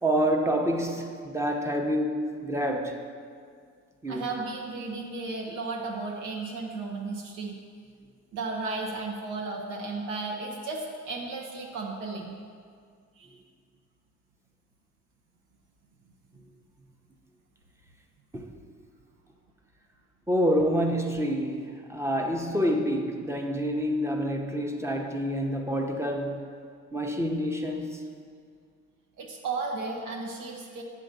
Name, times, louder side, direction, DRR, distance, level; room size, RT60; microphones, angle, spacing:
voice 1, 0.0-3.0 4.0-4.3 18.3-18.5 20.3-26.5 26.9-28.0, equal, 10° right, 0.8 m, -27 dB
voice 2, 4.1-7.6 8.3-12.4 13.2-13.4 29.2-30.8, right 3 dB, 80° right, 0.9 m, -34 dB
7.5 x 3.8 x 6.6 m
cardioid pair, 90°, 30 cm